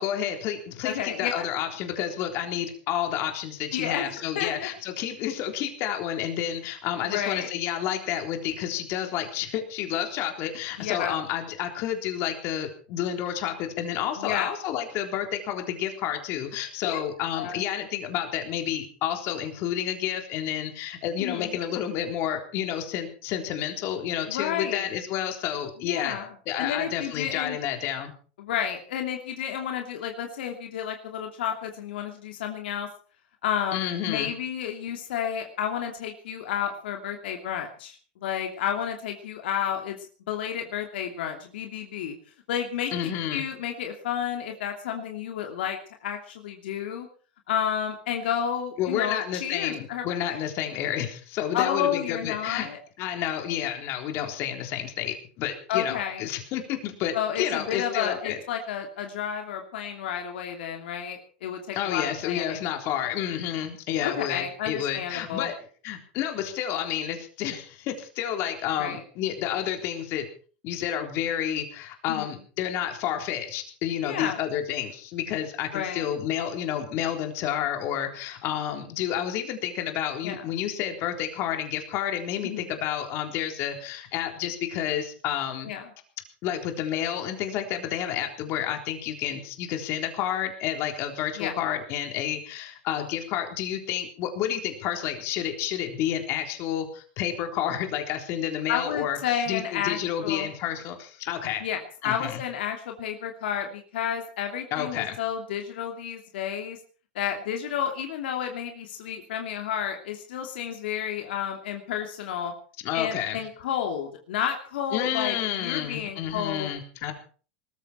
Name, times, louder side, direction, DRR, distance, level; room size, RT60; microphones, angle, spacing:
voice 1, 0.0-26.2 26.5-28.1 33.7-34.3 42.9-43.4 48.8-52.7 53.0-58.4 61.7-65.5 65.8-70.3 70.6-85.7 86.4-99.2 99.5-101.6 102.0-102.4 104.7-105.2 112.8-113.4 114.9-117.1, left 10 dB, 50° left, 5 dB, 3.8 m, -30 dB
voice 2, 0.8-1.3 3.7-4.7 7.0-7.5 10.8-11.1 14.2-14.5 16.8-17.0 17.3-17.6 21.2-21.6 24.3-24.9 25.8-26.3 26.6-27.6 28.4-32.9 33.4-42.1 42.5-47.1 47.5-50.4 51.5-52.8 55.7-56.2 57.1-62.6 64.0-65.5 68.8-69.0 72.1-72.3 74.0-74.4 75.7-76.1 80.2-80.4 82.4-82.7 85.6-85.8 91.4-91.5 98.7-100.5 101.6-106.8 107.1-112.5 112.9-116.7, left 9 dB, 80° left, 3 dB, 2.8 m, -31 dB
20.0 x 14.0 x 4.5 m, 0.40 s
supercardioid pair, 120°, 6 cm